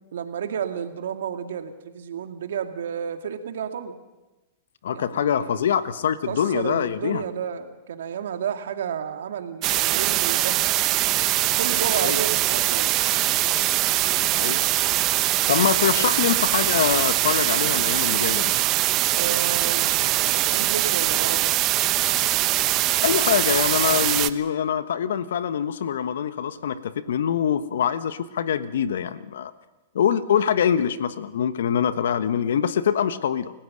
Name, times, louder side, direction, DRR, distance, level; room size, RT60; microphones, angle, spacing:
voice 1, 0.1-4.0 4.9-5.6 6.2-10.6 11.6-13.0 16.0-16.1 19.1-21.5, right 8 dB, 70° right, 6 dB, 2.2 m, -31 dB
voice 2, 4.8-7.2 12.0-12.2 14.3-14.6 15.5-18.5 23.0-29.5 29.9-33.5, left 8 dB, 70° left, 12 dB, 1.3 m, -24 dB
sound 1, 9.6-24.3, right 16 dB, 40° right, 0.9 m, -22 dB
29.0 x 16.5 x 6.6 m, 1.1 s
hypercardioid pair, 105°, 0 cm